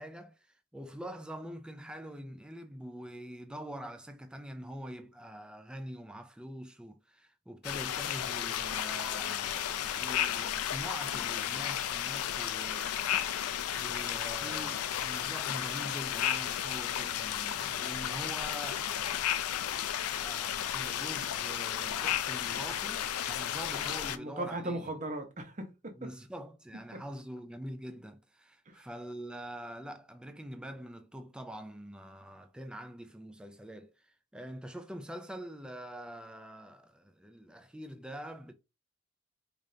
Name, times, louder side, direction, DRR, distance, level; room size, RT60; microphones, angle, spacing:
voice 1, 0.0-13.0 13.7-19.3 20.1-24.9 25.9-38.5, equal, 5° right, 0.3 m, -45 dB
sound 1, 7.6-24.2, left 10 dB, 90° left, 0.4 m, -33 dB
voice 2, 14.4-14.8 24.1-26.1 26.9-27.0 28.7-28.8, right 1 dB, 35° right, 0.7 m, -38 dB
4.9 x 2.5 x 2.7 m
head